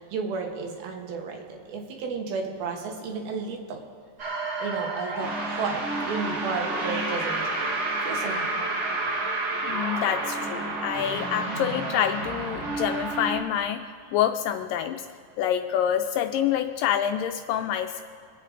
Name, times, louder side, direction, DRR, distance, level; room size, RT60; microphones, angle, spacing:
voice 1, 0.0-3.8 4.6-7.5 8.0-8.6, right 5 dB, 80° right, 2 dB, 3.3 m, -33 dB
sound 1, 4.2-13.4, right 2 dB, 60° right, 1.0 m, -30 dB
voice 2, 9.6-15.1 15.4-18.0, left 10 dB, 80° left, 6 dB, 2.0 m, -27 dB
24.5 x 8.8 x 3.8 m, 2.4 s
omnidirectional pair, 4.3 m